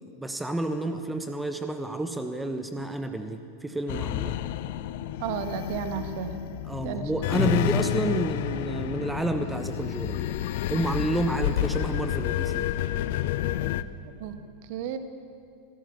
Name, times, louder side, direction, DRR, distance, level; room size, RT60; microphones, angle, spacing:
voice 1, 0.2-4.4 6.7-10.3 10.7-12.7, right 2 dB, 5° right, 8 dB, 1.2 m, -30 dB
sound 1, 3.9-13.8, left 12 dB, 50° left, 0.7 m, -29 dB
voice 2, 5.2-6.5 6.8-7.1 14.2-15.0, right 8 dB, 45° right, 8 dB, 1.7 m, -33 dB
26.5 x 16.5 x 7.2 m, 2.5 s
figure-of-eight pair, 90°, 0 cm